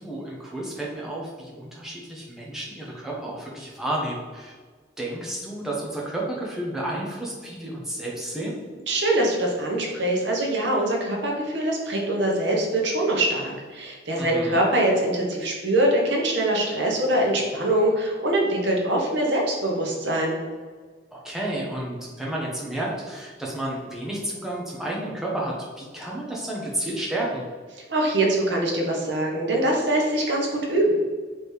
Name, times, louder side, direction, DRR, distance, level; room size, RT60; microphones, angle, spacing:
voice 1, 0.0-4.5 5.0-8.6 14.2-14.6 21.1-27.4, right 1 dB, ahead, -4 dB, 0.8 m, -31 dB
voice 2, 8.9-20.4 27.9-30.9, right 1 dB, 65° right, -1 dB, 1.0 m, -23 dB
3.4 x 3.2 x 4.4 m, 1.5 s
head